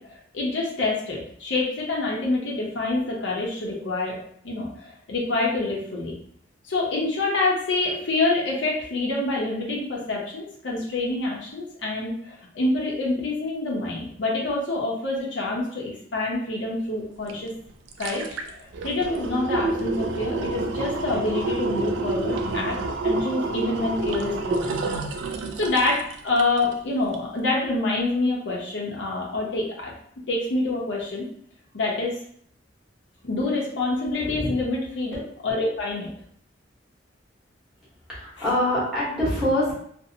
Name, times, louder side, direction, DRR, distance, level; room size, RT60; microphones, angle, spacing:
voice 1, 0.0-4.2 4.4-6.1 6.6-17.5 18.0-18.2 18.6-22.8 23.0-24.8 25.6-29.9 30.3-31.3 31.7-32.1 33.2-36.1 38.4-38.5, left 2 dB, 65° left, -2 dB, 0.6 m, -26 dB
sound 1, 17.3-17.4 17.7-26.8 27.1-27.2, right 3 dB, 75° right, 0.3 m, -28 dB
voice 2, 34.2-34.5 38.1-39.7, left 1 dB, 5° right, -9 dB, 1.0 m, -24 dB
2.6 x 2.0 x 2.6 m, 0.64 s
head